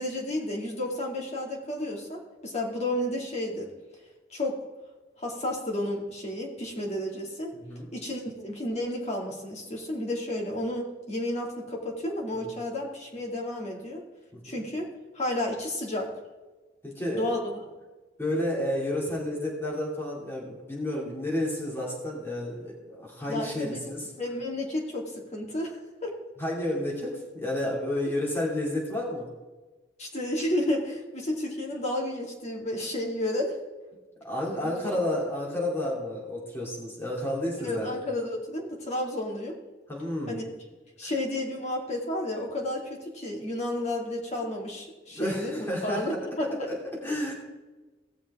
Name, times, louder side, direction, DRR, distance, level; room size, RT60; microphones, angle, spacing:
voice 1, 0.0-3.7 4.3-4.6 5.2-7.5 7.9-14.0 14.4-14.9 15.1-16.1 17.1-17.5 23.3-23.9 24.2-25.8 26.0-26.1 30.0-33.6 34.6-35.0 37.6-39.6 40.3-40.4 41.0-46.5, left 1 dB, 35° left, -1 dB, 2.4 m, -31 dB
voice 2, 7.5-7.9 12.3-12.5 14.3-14.6 16.8-17.3 18.2-24.1 26.4-29.3 34.2-38.0 39.9-40.4 41.0-41.1 44.4-44.5 45.1-46.0 46.5-47.3, left 1 dB, 15° left, -4 dB, 2.7 m, -31 dB
17.5 x 7.1 x 3.7 m, 1.2 s
head